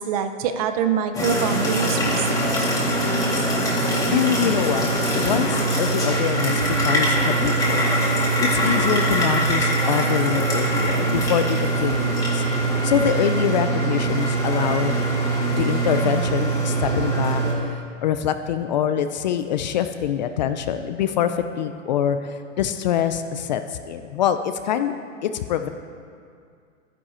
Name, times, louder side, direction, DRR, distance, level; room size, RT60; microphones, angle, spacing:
voice 1, 0.0-2.4, right 7 dB, 30° right, 8 dB, 0.5 m, -24 dB
sound 1, 1.1-17.5, right 2 dB, 10° left, 1.8 m, -22 dB
voice 2, 4.1-4.9 5.2-15.0 15.5-25.0 25.2-25.7, left 9 dB, 35° left, 9 dB, 0.4 m, -25 dB
12.5 x 9.9 x 4.3 m, 2.2 s
hypercardioid pair, 145°, 39 cm